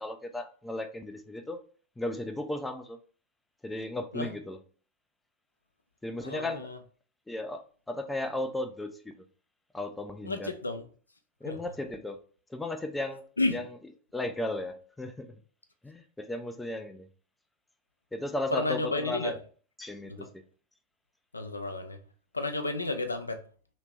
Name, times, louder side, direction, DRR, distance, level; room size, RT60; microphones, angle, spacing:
voice 1, 0.0-1.6 2.0-3.0 3.6-4.6 6.0-6.7 7.3-7.6 7.9-9.1 9.7-10.5 11.4-12.2 12.5-13.2 13.5-13.7 14.1-15.3 15.8-17.1 18.1-19.4 19.8-20.3, left 1 dB, 5° left, 0.4 m, -35 dB
voice 2, 6.2-6.8 10.2-10.8 11.5-11.6 13.4-13.6 18.5-19.4 20.1-20.3 21.3-22.0 22.3-23.4, left 2 dB, 80° left, 0.4 m, -31 dB
2.9 x 2.8 x 3.3 m
figure-of-eight pair, 90°, 0 cm